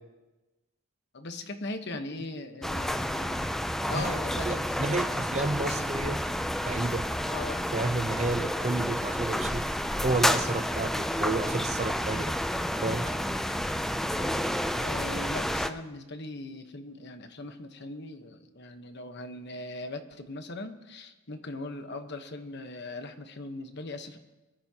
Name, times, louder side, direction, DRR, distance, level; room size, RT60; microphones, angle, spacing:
voice 1, 1.1-4.6 5.3-5.9 7.3-7.7 14.1-24.2, left 2 dB, 50° left, 7 dB, 1.1 m, -40 dB
sound 1, 2.6-15.7, equal, ahead, 0.4 m, -30 dB
voice 2, 3.9-4.2 4.4-6.2 6.7-7.0 7.7-9.6 10.0-12.4 12.8-13.2, right 2 dB, 30° right, 9 dB, 0.6 m, -31 dB
23.5 x 13.5 x 2.9 m, 1.1 s
head